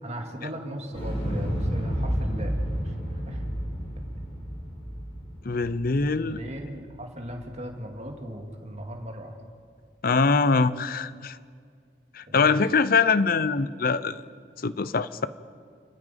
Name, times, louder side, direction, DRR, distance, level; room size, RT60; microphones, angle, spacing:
voice 1, 0.0-2.9 3.2-3.4 6.2-9.4 12.3-12.6, equal, 40° right, 2 dB, 2.3 m, -38 dB
Explosion, 0.9-7.0 7.3-7.4, equal, 40° left, 6.4 m, -31 dB
voice 2, 5.4-6.4 10.0-11.4 12.1-14.2 14.6-15.3, left 4 dB, 55° left, 16 dB, 0.7 m, -23 dB
29.5 x 10.0 x 9.2 m, 2.1 s
head